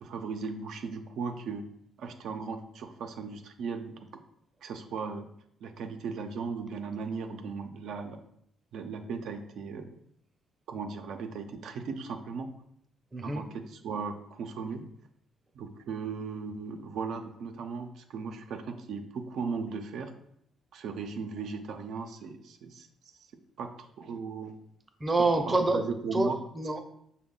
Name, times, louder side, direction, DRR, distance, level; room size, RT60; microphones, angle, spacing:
voice 1, 0.0-1.6 2.0-4.0 4.6-5.3 5.6-8.2 8.7-9.9 10.7-12.6 13.2-14.8 15.5-20.2 20.7-22.9 23.6-24.5 25.4-26.4, right 5 dB, 75° right, 5 dB, 0.4 m, -37 dB
voice 2, 13.1-13.4 25.0-25.8 26.1-26.8, right 2 dB, 25° right, 6 dB, 0.5 m, -27 dB
5.2 x 2.1 x 3.7 m, 0.71 s
cardioid pair, 90°, 0 cm